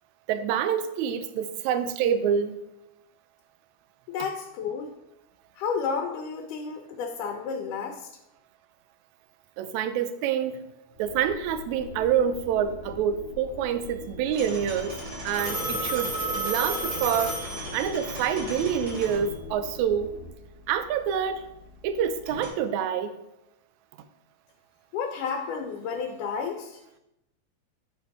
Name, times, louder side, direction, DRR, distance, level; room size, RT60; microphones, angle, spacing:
voice 1, 0.3-2.6 9.6-10.6 11.0-14.9 15.2-17.3 17.7-20.1 20.7-21.4 21.8-23.1, right 8 dB, 80° right, 10 dB, 1.8 m, -27 dB
voice 2, 4.1-4.9 5.6-8.1 24.9-26.8, left 6 dB, 85° left, 2 dB, 2.3 m, -31 dB
sound 1, 10.9-20.3, left 3 dB, 65° left, 2.0 m, -43 dB
sound 2, 14.3-22.5, right 1 dB, 40° right, 2.8 m, -40 dB
Telephone, 15.3-18.1, right 2 dB, 5° right, 1.0 m, -31 dB
9.7 x 4.9 x 3.6 m, 0.87 s
omnidirectional pair, 3.6 m